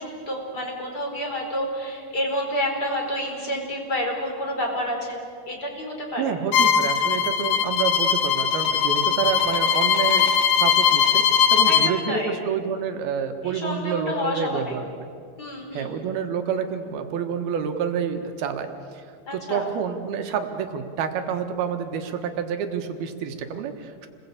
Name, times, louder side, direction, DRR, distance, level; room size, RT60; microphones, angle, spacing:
voice 1, 0.0-6.3 11.6-12.4 13.4-14.8 15.4-15.9 19.3-19.7, left 1 dB, 25° left, 1 dB, 4.9 m, -29 dB
voice 2, 6.2-15.1 15.7-19.0 19.3-24.1, right 7 dB, 75° right, 6 dB, 3.2 m, -28 dB
Bowed string instrument, 6.5-11.9, left 7 dB, 70° left, 2.7 m, -20 dB
29.5 x 21.0 x 8.4 m, 2.3 s
omnidirectional pair, 4.6 m